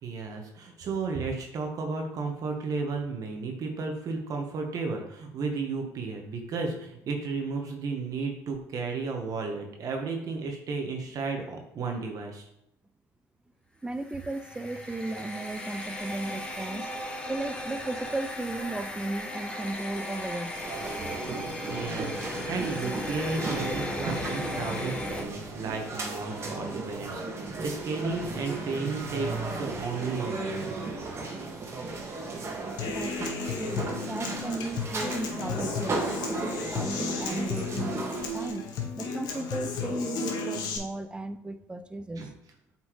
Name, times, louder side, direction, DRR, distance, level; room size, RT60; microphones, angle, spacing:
voice 1, 0.0-12.5 21.6-30.7 42.2-42.3, right 4 dB, 55° right, 3 dB, 1.1 m, -33 dB
voice 2, 13.8-16.9 17.3-20.6 32.9-38.7 39.0-42.3, right 2 dB, 15° right, 11 dB, 0.4 m, -35 dB
sound 1, 14.0-25.2, left 1 dB, 15° left, 1.3 m, -36 dB
sound 2, 20.5-38.5, right 3 dB, 35° right, 1.5 m, -35 dB
Human voice / Acoustic guitar, 32.8-40.8, left 4 dB, 70° left, 1.0 m, -33 dB
7.6 x 4.3 x 3.1 m, 0.79 s
supercardioid pair, 80°, 7 cm